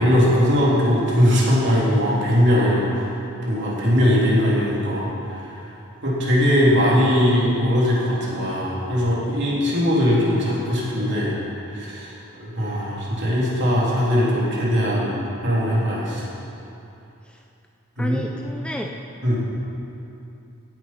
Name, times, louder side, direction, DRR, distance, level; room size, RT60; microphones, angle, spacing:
voice 1, 0.0-3.1 3.4-5.5 6.0-11.3 11.7-15.2 15.4-16.2 18.0-18.3 19.2-19.4, equal, 55° right, -6 dB, 3.3 m, -20 dB
voice 2, 18.0-18.9, equal, 5° left, 2 dB, 0.4 m, -30 dB
16.0 x 10.0 x 4.5 m, 2.8 s
head